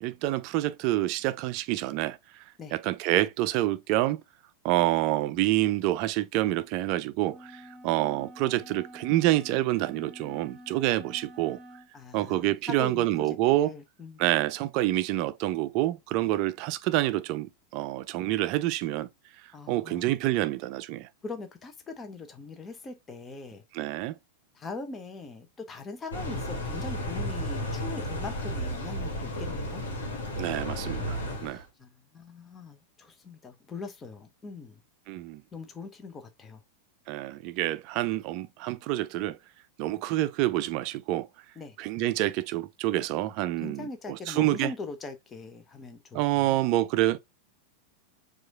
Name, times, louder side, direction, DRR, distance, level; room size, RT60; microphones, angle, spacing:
voice 1, 0.0-2.4 2.7-4.2 4.6-11.6 12.1-13.7 14.2-19.1 19.4-21.1 23.7-24.2 30.3-31.7 35.1-35.4 37.1-39.4 39.8-41.3 41.8-44.7 46.1-47.2, right 16 dB, 45° right, 0.4 m, -27 dB
sound 1, 7.3-11.9, equal, 20° right, 1.0 m, -48 dB
voice 2, 11.9-13.4 13.6-14.2 19.5-20.1 21.2-23.6 24.5-29.8 31.3-34.8 35.5-36.6 41.6-41.8 43.6-46.6, left 3 dB, 20° left, 0.9 m, -41 dB
sound 2, 26.1-31.6, equal, 65° left, 1.4 m, -33 dB
4.7 x 2.6 x 4.0 m
figure-of-eight pair, 90°, 0 cm